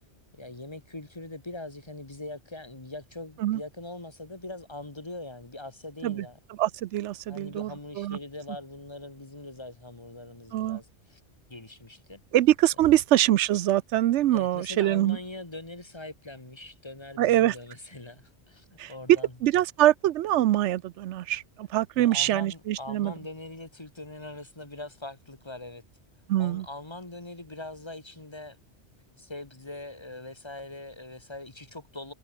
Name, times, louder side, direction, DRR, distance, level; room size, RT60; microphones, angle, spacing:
voice 1, 0.3-6.4 7.3-11.2 11.5-12.2 12.8-12.9 14.3-19.3 22.0-25.8 26.4-28.6 29.2-32.1, left 2 dB, 25° left, 2.1 m, -42 dB
voice 2, 6.6-7.7 8.0-8.2 10.5-10.8 12.3-15.2 17.2-17.5 18.8-18.9 19.4-23.1 26.3-26.7, right 13 dB, 80° right, 0.9 m, -24 dB
omnidirectional pair, 1.2 m